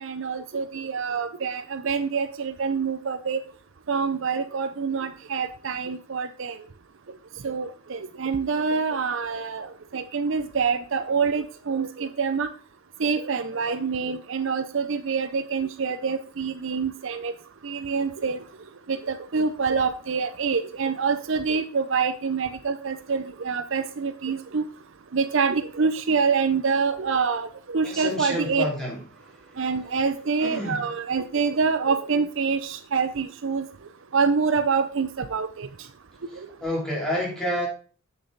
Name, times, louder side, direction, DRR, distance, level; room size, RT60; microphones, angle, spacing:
voice 1, 0.0-3.4 3.9-6.6 7.4-12.5 13.0-17.3 17.6-18.4 18.9-24.6 25.1-28.6 29.6-33.7 34.1-35.7, right 5 dB, 60° right, 10 dB, 0.5 m, -26 dB
voice 2, 27.8-29.0 30.4-30.8 36.6-37.7, left 1 dB, 5° left, -4 dB, 3.0 m, -28 dB
8.0 x 6.7 x 3.9 m, 0.39 s
head